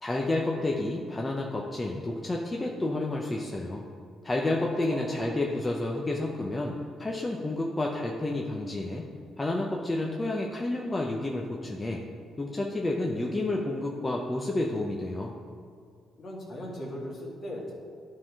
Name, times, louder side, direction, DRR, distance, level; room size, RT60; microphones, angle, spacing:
voice 1, 0.0-3.8 4.2-9.1 9.4-12.0 12.4-15.3, left 2 dB, 20° left, -1 dB, 0.7 m, -30 dB
voice 2, 16.2-17.7, left 1 dB, 50° left, -2 dB, 2.1 m, -38 dB
11.5 x 3.8 x 4.8 m, 2.3 s
cardioid pair, 90°, 0 cm